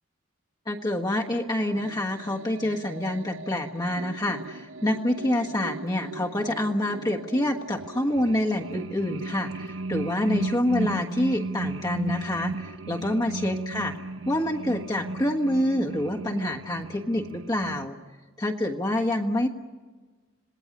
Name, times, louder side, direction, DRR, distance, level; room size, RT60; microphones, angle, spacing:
voice 1, 0.7-14.0 14.2-18.0 18.4-19.5, left 1 dB, 20° left, 0 dB, 1.4 m, -27 dB
sound 1, 1.8-17.9, right 2 dB, 70° right, 0.8 m, -36 dB
27.0 x 19.0 x 9.8 m, 1.4 s
head